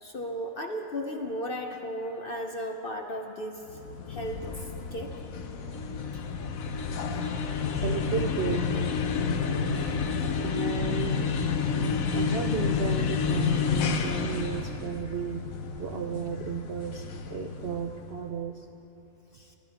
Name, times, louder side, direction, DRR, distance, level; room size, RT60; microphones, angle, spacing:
voice 1, 0.0-3.8 4.1-4.6 4.9-5.1 19.3-19.6, equal, 45° left, 3 dB, 0.8 m, -35 dB
sound 1, 3.7-18.2, left 5 dB, 65° left, 1.2 m, -30 dB
voice 2, 7.8-8.7 9.6-9.7 10.4-11.3 12.1-15.5 15.8-18.6, right 7 dB, 60° right, 3 dB, 0.6 m, -34 dB
25.5 x 15.5 x 2.9 m, 3.0 s
omnidirectional pair, 1.7 m